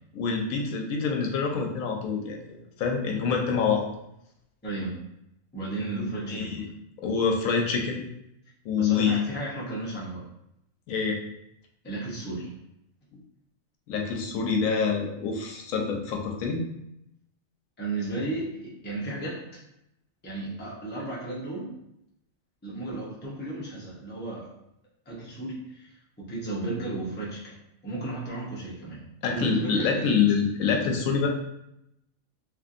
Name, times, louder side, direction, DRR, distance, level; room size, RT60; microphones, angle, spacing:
voice 1, 0.1-3.9 6.0-6.7 7.0-8.0 8.6-9.3 10.9-11.2 13.9-16.7 29.2-31.3, left 5 dB, 85° left, 1 dB, 1.0 m, -26 dB
voice 2, 4.6-5.0 5.5-6.6 8.8-10.2 11.8-12.6 17.8-19.5 20.2-21.8 22.6-24.5 25.1-27.6 27.8-30.1, right 2 dB, 10° left, -5 dB, 0.5 m, -34 dB
3.1 x 2.6 x 2.5 m, 0.81 s
omnidirectional pair, 1.4 m